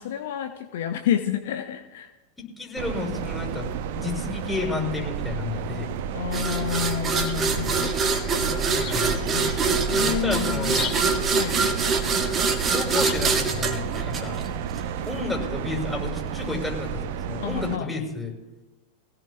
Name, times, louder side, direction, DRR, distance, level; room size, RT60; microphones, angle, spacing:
voice 1, 0.0-2.1 6.1-8.0 9.9-10.8 11.3-11.7 17.4-18.0, left 10 dB, 55° left, 7 dB, 0.9 m, -29 dB
voice 2, 2.4-5.9 8.8-9.1 10.0-10.9 12.7-14.4 15.1-18.3, left 3 dB, 5° left, -2 dB, 6.0 m, -31 dB
sound 1, 2.8-17.8, right 8 dB, 50° right, 0.7 m, -31 dB
sound 2, 6.3-14.8, right 4 dB, 20° right, 1.7 m, -25 dB
Chirp tweet, 6.8-14.4, left 6 dB, 35° left, 4.0 m, -40 dB
24.0 x 17.0 x 2.3 m, 1.1 s
figure-of-eight pair, 90°, 0 cm